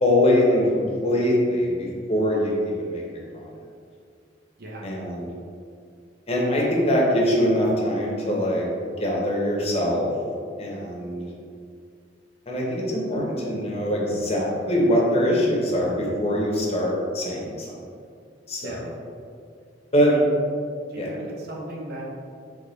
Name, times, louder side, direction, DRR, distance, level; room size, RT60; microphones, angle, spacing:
voice 1, 0.0-3.0 3.3-3.5 4.8-5.3 6.3-10.1 10.6-11.3 12.5-17.7 18.5-18.8 19.9-20.1 21.0-21.1, left 1 dB, 35° left, -3 dB, 0.9 m, -23 dB
voice 2, 20.9-22.0, right 1 dB, 60° right, -2 dB, 0.8 m, -36 dB
3.5 x 3.3 x 3.9 m, 2.2 s
head